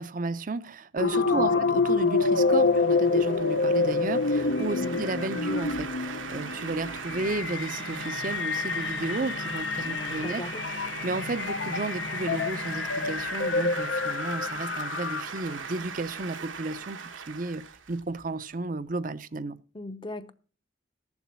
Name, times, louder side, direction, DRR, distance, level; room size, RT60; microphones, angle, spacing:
voice 1, 0.0-10.4 10.7-17.6 17.9-19.6, right 3 dB, 40° right, 0.6 m, -33 dB
sound 1, 1.0-15.5, left 4 dB, 65° left, 0.6 m, -27 dB
sound 2, 1.9-18.5, right 6 dB, 80° right, 1.1 m, -40 dB
voice 2, 9.8-10.6 19.7-20.3, left 1 dB, 25° left, 0.7 m, -38 dB
14.5 x 7.2 x 6.1 m
head